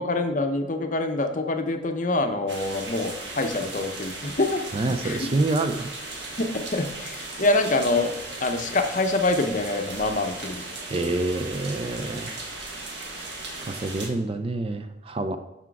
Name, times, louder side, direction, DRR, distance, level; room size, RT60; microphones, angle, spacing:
voice 1, 0.0-5.3 6.4-8.1 8.4-10.6, left 2 dB, 40° left, 6 dB, 0.7 m, -26 dB
sound 1, 2.5-14.1, right 2 dB, 55° right, 1.3 m, -37 dB
voice 2, 4.7-5.9 10.9-12.3 13.6-15.4, right 2 dB, 30° right, 9 dB, 0.4 m, -27 dB
6.1 x 5.7 x 4.7 m, 0.98 s
head